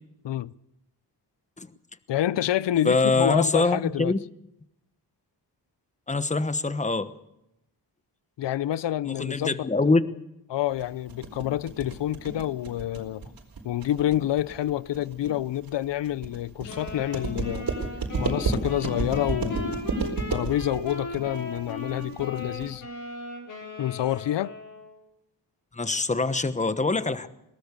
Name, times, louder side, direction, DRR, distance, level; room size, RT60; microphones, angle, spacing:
voice 1, 2.1-4.1 8.4-9.9 10.5-13.2 13.6-17.7 18.2-19.8 20.3-22.9 23.8-24.5, left 12 dB, 80° left, 0.7 m, -28 dB
voice 2, 2.8-4.2 6.1-7.1 9.1-10.0 25.7-27.3, left 3 dB, 15° left, 1.1 m, -24 dB
sound 1, 10.8-22.8, right 4 dB, 50° right, 4.4 m, -32 dB
sound 2, 16.7-25.0, left 1 dB, 45° left, 7.6 m, -38 dB
22.0 x 19.0 x 6.8 m
wide cardioid pair, 120°, 42 cm